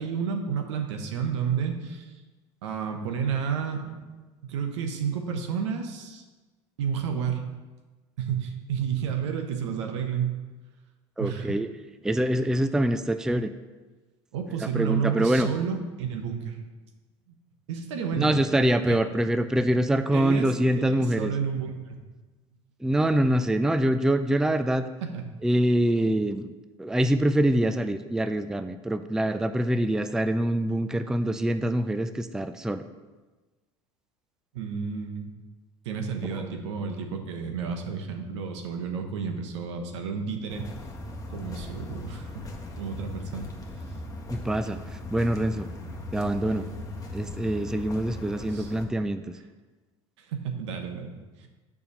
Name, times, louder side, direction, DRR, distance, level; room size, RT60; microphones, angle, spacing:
voice 1, 0.0-2.1 2.6-4.0 4.4-6.2 6.8-7.5 8.2-10.3 11.2-11.5 14.3-16.6 17.7-18.3 18.9-19.0 20.1-22.0 25.0-25.3 34.5-35.3 35.8-40.7 41.3-42.5 42.7-43.5 48.5-48.7 50.2-51.5, right 7 dB, 75° right, 4 dB, 1.2 m, -31 dB
voice 2, 11.2-11.7 12.0-13.5 14.6-15.5 18.2-21.3 22.8-24.9 25.4-26.5 26.8-32.8 36.4-36.5 44.3-44.8 45.1-45.7 46.1-46.7 47.1-49.2, right 1 dB, 5° right, 10 dB, 0.4 m, -25 dB
sound 1, 40.5-48.8, left 2 dB, 25° left, 1.4 m, -39 dB
6.8 x 5.3 x 6.9 m, 1.2 s
hypercardioid pair, 80°, 15 cm